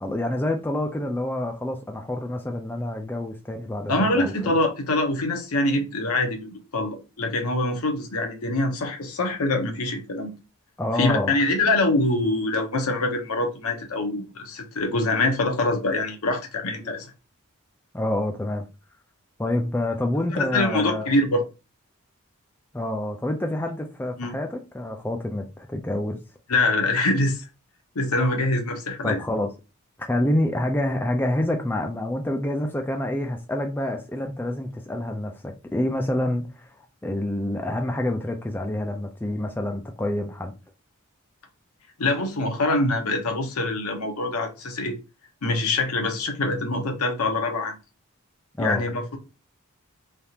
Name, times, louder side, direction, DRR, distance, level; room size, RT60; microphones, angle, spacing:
voice 1, 0.0-4.5 10.8-11.4 16.8-16.9 17.9-18.6 19.4-21.1 22.7-26.2 29.0-29.5 30.1-40.5 48.6-48.8, left 1 dB, 10° left, 0.3 m, -27 dB
voice 2, 3.9-10.3 11.0-17.1 20.5-21.4 24.2-24.3 26.5-27.4 27.9-29.2 42.0-45.0 45.4-47.8 48.6-49.2, left 2 dB, 80° left, 0.8 m, -24 dB
3.4 x 2.4 x 2.8 m
head